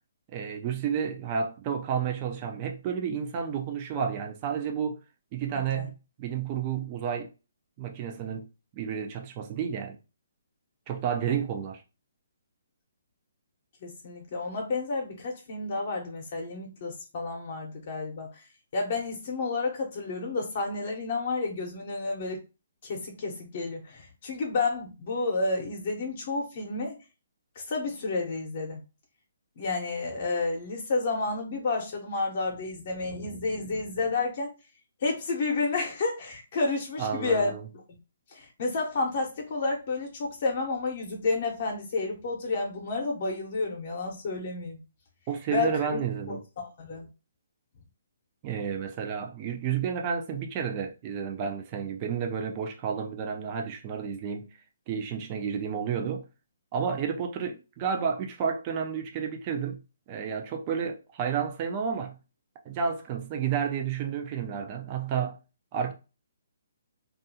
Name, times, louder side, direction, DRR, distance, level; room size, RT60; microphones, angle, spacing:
voice 1, 0.3-5.0 5.3-7.3 7.8-8.5 8.7-10.0 10.9-11.8 37.0-37.6 45.3-46.4 48.4-54.5 54.9-56.2 56.7-59.8 60.1-62.2 62.7-65.4 65.7-65.9, right 7 dB, 30° right, 0.4 m, -31 dB
voice 2, 13.8-18.3 18.7-22.4 22.8-26.9 27.7-28.8 29.6-34.5 35.0-37.8 38.3-44.8 45.5-46.0 46.3-47.1, left 3 dB, 45° left, 0.8 m, -30 dB
2.7 x 2.4 x 2.7 m
hypercardioid pair, 155°, 0 cm